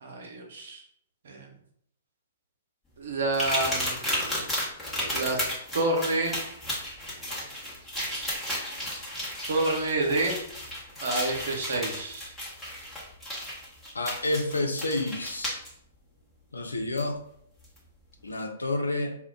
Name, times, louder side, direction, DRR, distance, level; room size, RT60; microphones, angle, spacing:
voice 1, 0.0-0.8 1.2-1.5 3.0-4.0 5.1-5.4 5.7-6.4 9.5-10.4 11.0-12.3, right 2 dB, 60° right, 2 dB, 0.7 m, -28 dB
sound 1, 3.3-15.7 17.0-17.1 17.6-17.8, equal, 10° left, 0.9 m, -33 dB
voice 2, 13.9-15.6 16.5-17.2 18.2-19.2, left 2 dB, 80° left, 4 dB, 0.5 m, -29 dB
2.2 x 2.1 x 3.8 m, 0.71 s
figure-of-eight pair, 115°, 0 cm